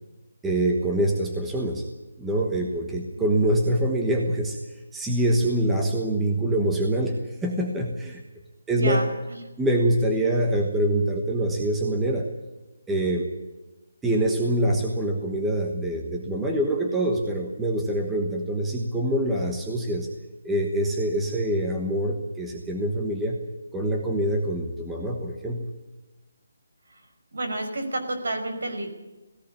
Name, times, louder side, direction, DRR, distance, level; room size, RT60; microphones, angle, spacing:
voice 1, 0.4-1.8 2.2-4.6 4.9-8.2 8.7-9.0 9.6-12.3 12.9-13.3 14.0-20.1 20.4-23.4 23.7-25.7, right 1 dB, 5° right, 0 dB, 1.2 m, -25 dB
voice 2, 8.7-9.1 27.3-28.9, right 1 dB, 65° right, 7 dB, 5.5 m, -29 dB
18.5 x 17.0 x 8.6 m, 1.1 s
hypercardioid pair, 180°, 0 cm